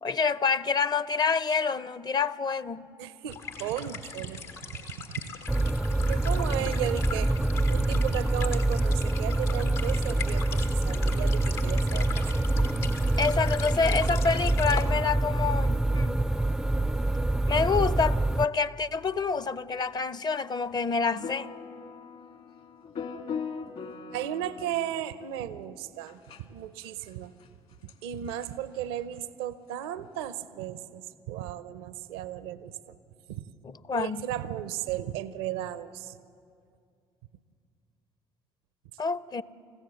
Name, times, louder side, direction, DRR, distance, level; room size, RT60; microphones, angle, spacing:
voice 1, 0.0-2.9 13.2-16.2 17.5-21.5 33.6-34.2 39.0-39.4, left 5 dB, 30° left, 0.6 m, -27 dB
voice 2, 3.0-4.8 5.1-5.2 6.1-7.4 7.7-12.2 12.8-13.0 24.1-26.2 26.5-27.3 28.0-32.9 33.3-33.5 33.9-36.2, right 11 dB, 75° right, 0.6 m, -35 dB
sound 1, 3.3-14.8, left 5 dB, 75° left, 1.6 m, -41 dB
sound 2, 5.5-18.4, right 2 dB, 5° right, 0.4 m, -26 dB
sound 3, 21.2-25.0 26.1-26.4 27.1-27.2 27.4-27.5 27.9-28.0 28.3-28.5 30.2-30.3, left 6 dB, 55° left, 1.9 m, -39 dB
27.0 x 15.5 x 6.9 m
hypercardioid pair, 55°, 13 cm